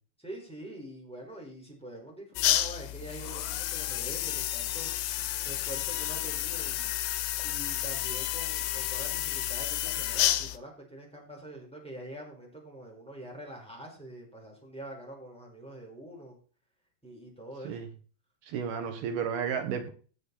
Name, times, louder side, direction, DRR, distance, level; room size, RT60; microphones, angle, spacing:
voice 1, 0.2-6.9 7.4-16.4 17.0-17.8, right 1 dB, ahead, 0 dB, 5.0 m, -45 dB
sound 1, 2.4-10.6, left 13 dB, 90° left, 2.9 m, -31 dB
voice 2, 18.5-19.9, right 7 dB, 85° right, 6 dB, 3.9 m, -32 dB
16.5 x 9.0 x 4.4 m, 0.39 s
omnidirectional pair, 4.4 m